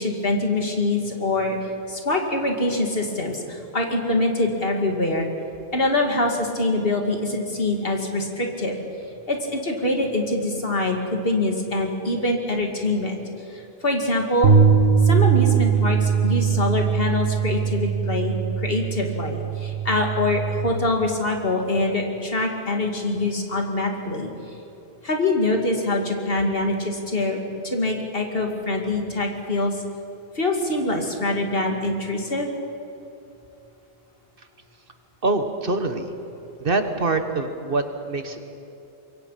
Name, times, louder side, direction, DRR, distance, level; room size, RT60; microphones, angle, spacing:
voice 1, 0.0-1.6 1.9-5.3 5.7-8.8 9.3-13.2 13.5-14.5 15.0-24.3 25.0-29.8 30.3-32.5, left 2 dB, 55° left, 2 dB, 2.5 m, -24 dB
sound 1, 14.4-20.7, right 7 dB, 70° right, 1.7 m, -21 dB
voice 2, 35.2-36.1 36.6-38.4, right 3 dB, 55° right, 7 dB, 1.5 m, -24 dB
25.0 x 22.5 x 5.7 m, 2.9 s
omnidirectional pair, 1.1 m